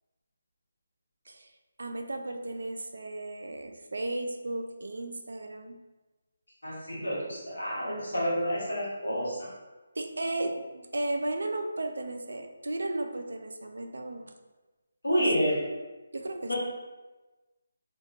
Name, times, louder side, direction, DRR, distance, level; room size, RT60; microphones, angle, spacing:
voice 1, 1.8-5.8 10.0-10.6 10.9-14.3 15.2-15.3 16.1-16.5, right 2 dB, 75° right, 5 dB, 0.3 m, -34 dB
voice 2, 6.6-9.5 15.0-15.6 16.5-16.6, equal, 90° left, -6 dB, 1.1 m, -29 dB
2.6 x 2.2 x 2.5 m, 1.2 s
figure-of-eight pair, 155°, 0 cm